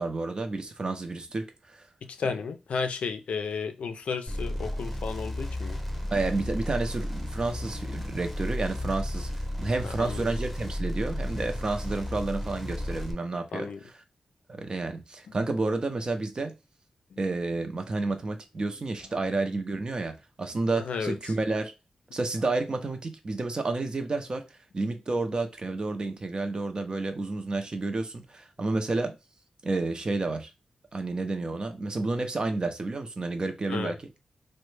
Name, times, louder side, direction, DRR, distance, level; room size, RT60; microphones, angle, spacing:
voice 1, 0.0-1.9 2.2-2.3 6.1-9.3 9.6-13.7 14.5-16.5 17.2-21.7 22.1-24.4 24.7-29.2 29.6-30.5 30.9-34.0, right 3 dB, 40° right, 0.6 m, -30 dB
voice 2, 2.0-5.8 9.8-10.3 13.5-13.8 15.3-15.4 17.1-17.2 20.8-21.2 28.6-28.7 33.7-34.0, left 5 dB, 90° left, 0.4 m, -33 dB
sound 1, 4.3-13.1, left 1 dB, 5° right, 0.7 m, -33 dB
3.2 x 2.1 x 3.1 m
cardioid pair, 75°, 2 cm